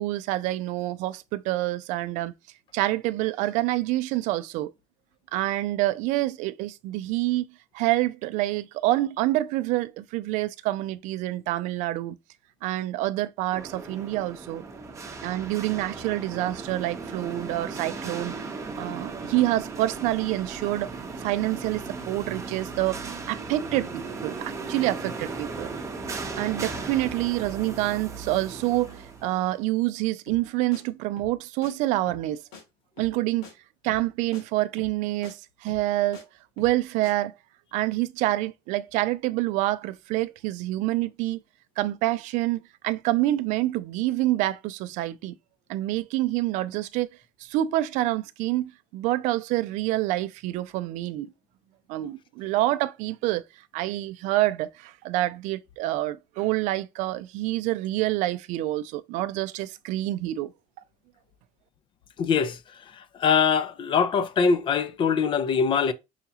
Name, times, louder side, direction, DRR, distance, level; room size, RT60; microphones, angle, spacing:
voice 1, 0.0-2.3 2.7-4.7 5.3-7.5 7.7-12.2 12.6-14.6 15.2-18.3 18.8-20.9 21.2-23.0 23.3-25.7 26.4-32.4 33.0-33.5 33.8-36.2 36.6-37.3 37.7-41.4 41.8-45.3 45.7-47.1 47.4-51.3 51.9-53.4 53.7-60.5, right 16 dB, 70° right, 0.4 m, -27 dB
sound 1, 13.5-29.6, right 4 dB, 25° right, 0.8 m, -37 dB
sound 2, 30.3-30.5 30.7-30.8 31.2-31.4 31.6-31.7 32.1-32.3 32.5-32.6 33.0-33.2 33.4-33.5 33.9-34.1 34.3-34.4 34.8-35.0 35.2-35.3 35.7-36.2 36.6-36.8 37.0-37.1, left 3 dB, 80° left, 1.8 m, -45 dB
voice 2, 62.2-62.6 62.9-65.9, left 6 dB, 40° left, 0.5 m, -23 dB
5.7 x 2.3 x 2.8 m
cardioid pair, 115°, 13 cm